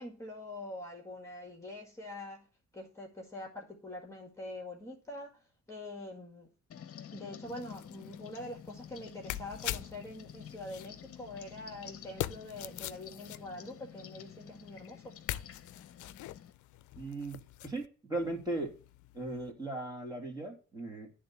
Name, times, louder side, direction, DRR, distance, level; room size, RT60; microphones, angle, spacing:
voice 1, 0.0-2.5 2.7-5.4 5.7-6.5 7.1-15.2, left 1 dB, 10° left, 1.9 m, -44 dB
sound 1, 6.7-16.5, left 9 dB, 50° left, 0.8 m, -50 dB
sound 2, 7.4-17.9 18.2-19.5, left 14 dB, 75° left, 0.5 m, -44 dB
voice 2, 17.0-17.4 17.6-18.7 19.1-21.1, right 2 dB, 15° right, 2.3 m, -37 dB
10.5 x 3.8 x 7.0 m
cardioid pair, 90°, 30 cm